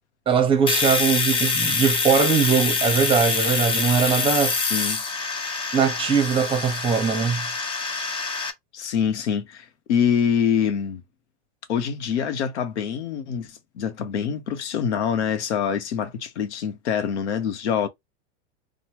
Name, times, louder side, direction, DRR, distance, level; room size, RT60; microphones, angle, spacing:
voice 1, 0.3-4.6 5.7-7.5, right 6 dB, 15° right, 0.9 m, -21 dB
Domestic sounds home sounds, 0.7-8.5, left 4 dB, 15° left, 0.4 m, -25 dB
voice 2, 4.6-5.0 8.7-11.0 11.7-17.9, left 7 dB, 90° left, 0.8 m, -25 dB
3.0 x 2.3 x 2.9 m
supercardioid pair, 135°, 33 cm